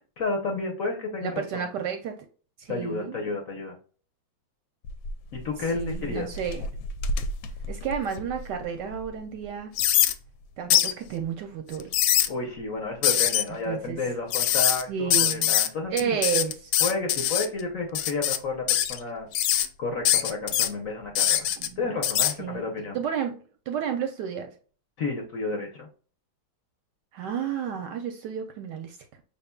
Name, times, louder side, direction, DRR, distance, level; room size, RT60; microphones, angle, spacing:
voice 1, 0.2-1.6 2.7-3.8 5.3-6.3 12.3-16.2 16.8-21.5 21.8-23.0 25.0-25.9, left 3 dB, 55° left, 2 dB, 1.0 m, -31 dB
voice 2, 1.2-2.1 2.6-3.2 5.7-6.6 7.7-9.7 10.6-11.9 13.7-14.0 14.9-15.6 15.9-16.7 21.6-21.9 22.4-23.4 23.7-24.5 27.1-29.0, right 8 dB, 75° right, 5 dB, 1.1 m, -31 dB
sound 1, 4.8-5.4 5.8-8.4 8.9-9.0 9.8-10.1 10.7-10.9 11.7-12.3 13.0-13.4 14.3-14.8 15.1-15.7 16.0-17.5 17.9-18.4 18.7-19.0 19.3-19.7 20.0-20.7 21.1-21.7 22.0-22.3, left 11 dB, 75° left, 1.2 m, -23 dB
5.7 x 3.6 x 2.3 m, 0.40 s
omnidirectional pair, 2.2 m